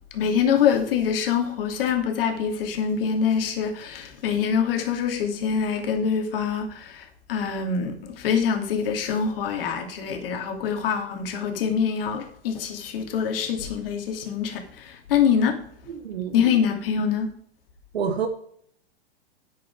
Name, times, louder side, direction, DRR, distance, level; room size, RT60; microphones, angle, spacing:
voice 1, 0.1-7.0 7.3-15.5 16.3-17.3, left 7 dB, 60° left, 2.7 m, -25 dB
voice 2, 16.0-16.3 17.9-18.3, right 7 dB, 70° right, 1.4 m, -26 dB
10.5 x 8.1 x 4.8 m
hypercardioid pair, 110°, 32 cm